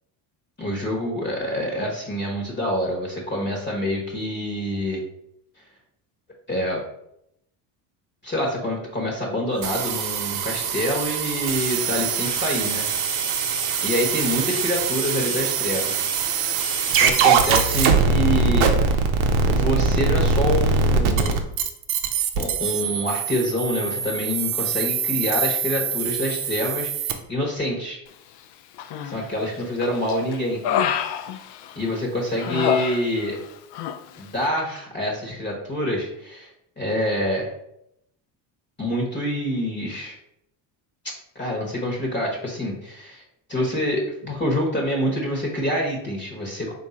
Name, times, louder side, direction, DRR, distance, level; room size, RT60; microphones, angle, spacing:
voice 1, 0.6-5.0 6.5-6.8 8.2-12.9 13.8-16.0 16.9-19.0 19.4-21.5 22.4-26.9 27.3-28.0 29.0-30.6 31.7-33.4 34.2-36.5 36.8-37.5 38.8-40.2 41.3-43.2 43.5-46.7, equal, 20° left, -1 dB, 1.1 m, -26 dB
sound 1, 9.6-27.1, right 5 dB, 70° right, 0.7 m, -23 dB
Human voice, 28.8-29.4 29.8-32.0 32.4-33.5 33.7-34.0, left 9 dB, 55° left, 0.5 m, -27 dB
3.5 x 2.6 x 4.2 m, 0.76 s
supercardioid pair, 80°, 50 cm